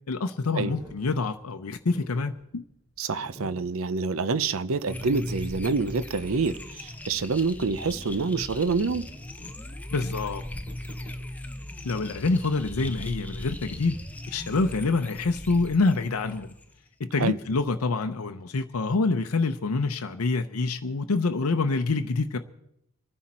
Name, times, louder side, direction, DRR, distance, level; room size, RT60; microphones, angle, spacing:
voice 1, 0.1-2.6 9.9-10.4 11.8-14.0 14.3-16.5 17.0-22.4, left 3 dB, 85° left, 0.7 m, -26 dB
sound 1, 0.7-11.7, equal, 20° right, 4.6 m, -48 dB
voice 2, 3.0-9.1 17.2-17.4, right 4 dB, 70° right, 0.6 m, -27 dB
sound 2, 4.9-16.8, left 1 dB, 5° left, 0.7 m, -38 dB
25.5 x 10.0 x 4.3 m
head